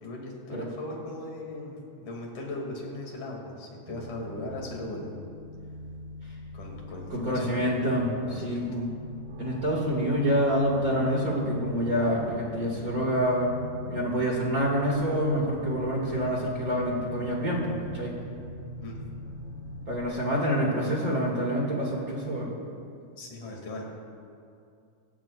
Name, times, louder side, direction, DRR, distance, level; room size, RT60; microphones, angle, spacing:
voice 1, 0.0-5.3 6.5-7.5 8.2-8.7 18.8-19.0 23.2-23.8, left 2 dB, 80° left, -1 dB, 3.9 m, -38 dB
sound 1, 3.9-20.0, left 1 dB, 55° right, 1.9 m, -41 dB
voice 2, 7.1-8.9 9.4-18.1 19.9-22.5, equal, 35° right, -3 dB, 2.1 m, -27 dB
25.5 x 15.0 x 2.4 m, 2.4 s
omnidirectional pair, 3.5 m